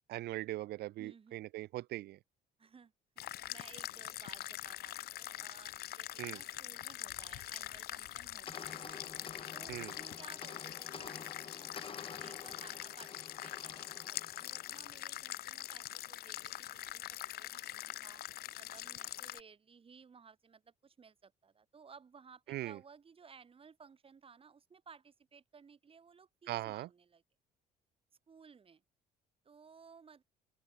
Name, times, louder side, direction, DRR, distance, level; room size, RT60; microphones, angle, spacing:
voice 1, 0.1-2.2 6.2-6.4 9.7-10.0 22.5-22.8 26.5-26.9, right 16 dB, 75° right, 0.9 m, -40 dB
voice 2, 1.0-1.5 2.6-2.9 3.5-9.0 9.5-11.9 12.1-13.1 13.4-18.2 18.5-27.2 28.3-28.8 29.4-30.2, right 6 dB, 35° right, 7.5 m, -58 dB
sound 1, 3.2-19.4, left 14 dB, 70° left, 1.8 m, -44 dB
sound 2, 8.5-15.1, left 5 dB, 30° left, 6.6 m, -50 dB
open air
cardioid pair, 110°, 17 cm